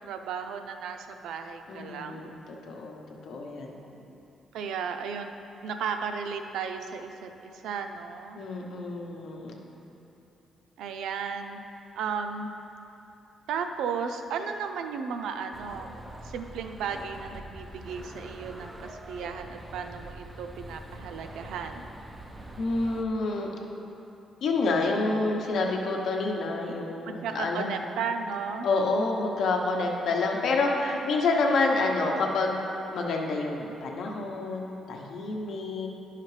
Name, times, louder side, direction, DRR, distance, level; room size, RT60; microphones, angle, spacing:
voice 1, 0.0-2.3 4.5-5.3 5.6-8.4 10.8-11.6 11.9-12.5 13.5-16.0 16.2-21.9 27.1-28.7, right 6 dB, 90° right, 6 dB, 0.4 m, -34 dB
voice 2, 1.7-2.3 2.7-3.8 8.4-9.6 22.6-23.5 24.4-27.9 28.6-35.9, left 3 dB, 65° left, 1 dB, 0.9 m, -28 dB
sound 1, 15.5-23.1, right 1 dB, 15° right, 0.5 m, -44 dB
10.5 x 5.7 x 3.2 m, 2.9 s
cardioid pair, 140°, 0 cm